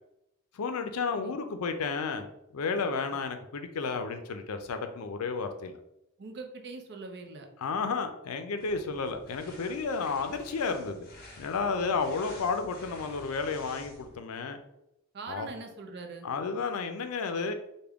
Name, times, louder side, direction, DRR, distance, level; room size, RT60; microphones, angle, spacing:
voice 1, 0.5-2.3 2.5-5.8 7.6-11.0 11.4-14.6 15.3-15.5 16.2-17.5, left 4 dB, 80° left, 7 dB, 0.4 m, -32 dB
voice 2, 6.2-7.5 11.8-12.1 15.1-16.3, right 3 dB, 50° right, 4 dB, 0.5 m, -43 dB
sound 1, 8.6-14.2, left 2 dB, 45° left, 0.7 m, -50 dB
3.5 x 2.1 x 3.4 m, 0.83 s
head